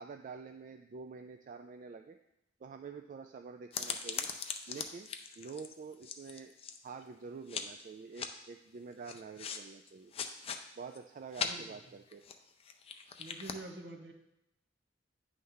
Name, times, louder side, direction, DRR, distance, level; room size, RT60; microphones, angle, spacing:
voice 1, 0.0-2.2 2.6-4.3 4.7-5.1 5.4-6.5 6.8-10.1 10.8-12.2, right 5 dB, 45° right, 6 dB, 0.3 m, -47 dB
sound 1, 3.7-7.0 7.5-7.8 8.1-8.3 9.0-9.6 9.9-10.6 10.9-11.0 11.3-11.5 12.1-13.5, left 6 dB, 35° left, 0.5 m, -40 dB
voice 2, 11.4-11.9 13.2-14.1, right 2 dB, 70° right, 3 dB, 1.0 m, -47 dB
9.2 x 3.2 x 5.6 m, 0.87 s
head